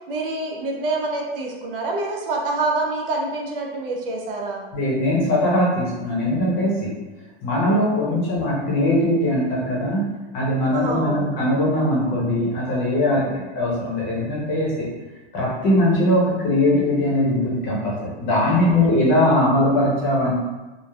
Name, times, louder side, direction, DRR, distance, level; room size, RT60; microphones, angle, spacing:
voice 1, 0.1-4.6 8.0-8.2 10.7-11.3 13.1-13.4 18.5-19.0, right 2 dB, 60° right, 0 dB, 0.6 m, -27 dB
voice 2, 4.7-6.9 7.4-10.1 10.3-13.3 13.5-14.9 15.3-20.3, left 1 dB, 30° left, -5 dB, 0.7 m, -20 dB
3.2 x 2.0 x 2.3 m, 1.1 s
hypercardioid pair, 145°, 31 cm